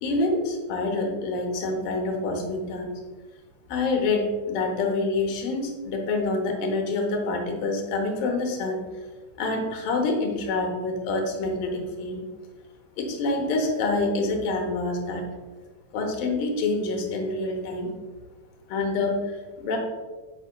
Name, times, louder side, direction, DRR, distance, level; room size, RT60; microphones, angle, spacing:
voice 1, 0.0-2.9 3.7-8.8 9.4-12.2 13.0-15.3 15.9-17.9 18.7-19.8, left 3 dB, 85° left, 2 dB, 2.6 m, -27 dB
7.4 x 5.9 x 2.2 m, 1.3 s
omnidirectional pair, 4.0 m